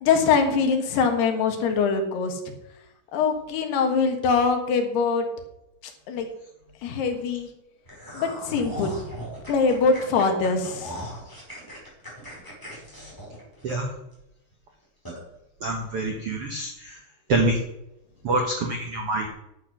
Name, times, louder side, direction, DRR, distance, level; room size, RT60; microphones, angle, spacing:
voice 1, 0.0-2.3 3.1-5.3 6.1-6.3 6.8-7.5 8.1-8.9 9.5-11.0, left 5 dB, 75° left, 5 dB, 3.5 m, -23 dB
sound 1, 7.8-14.1 14.5-14.6 15.0-15.2, equal, 5° left, 4.5 m, -38 dB
voice 2, 15.6-16.7 17.3-17.6 18.2-19.3, right 2 dB, 70° right, 2 dB, 1.3 m, -25 dB
11.0 x 7.9 x 6.2 m, 0.87 s
omnidirectional pair, 4.7 m